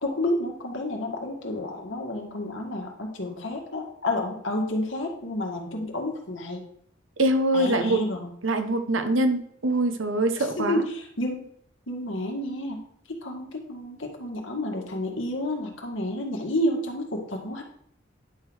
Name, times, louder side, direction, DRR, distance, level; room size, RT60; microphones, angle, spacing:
voice 1, 0.0-6.6 7.5-8.3 10.4-11.5 11.9-12.8 13.2-17.6, left 1 dB, 75° left, 1 dB, 2.0 m, -30 dB
voice 2, 7.2-8.0 8.4-10.8, right 1 dB, 80° right, 7 dB, 1.1 m, -24 dB
10.5 x 3.9 x 6.3 m, 0.66 s
head